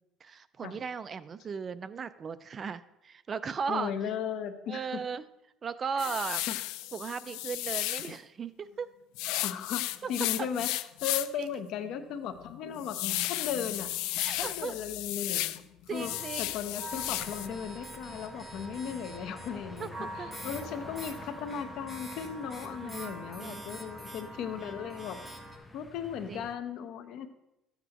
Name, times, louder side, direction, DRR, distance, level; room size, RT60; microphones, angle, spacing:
voice 1, 0.2-3.9 4.7-5.2 5.6-6.4 6.9-8.9 10.0-10.1 11.4-11.5 14.2-14.7 15.9-16.5 19.8-19.9 20.2-20.5 22.7-23.9 26.3-26.5, right 6 dB, 30° right, 14 dB, 0.4 m, -37 dB
voice 2, 3.7-5.0 6.0-6.1 6.5-6.6 9.4-13.9 14.3-15.6 15.9-16.1 16.4-25.2 25.7-27.3, left 8 dB, 65° left, 9 dB, 0.8 m, -37 dB
sound 1, 6.0-8.2 9.2-11.4 11.8-11.9 12.4-15.6 15.9-17.5, left 16 dB, 85° left, 0.3 m, -34 dB
sound 2, 15.9-25.6, right 1 dB, 10° right, 1.5 m, -44 dB
sound 3, 16.9-26.5, left 2 dB, 15° left, 0.6 m, -50 dB
13.0 x 8.1 x 2.9 m, 0.88 s
cardioid pair, 135°, 0 cm